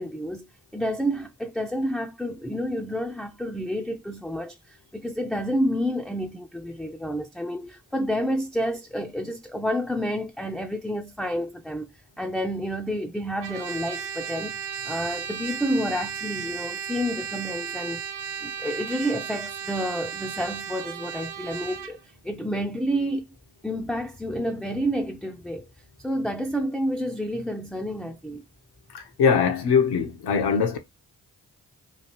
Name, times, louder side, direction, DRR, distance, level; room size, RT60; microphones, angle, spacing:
voice 1, 0.0-14.6 14.8-18.0 18.4-22.0 22.2-23.3 23.6-25.7 26.0-28.4, equal, ahead, 0.4 m, -29 dB
Trumpet, 13.4-21.9, right 8 dB, 90° right, 0.5 m, -35 dB
voice 2, 29.2-30.8, left 6 dB, 75° left, 0.8 m, -21 dB
3.2 x 2.4 x 2.9 m
supercardioid pair, 40°, 40 cm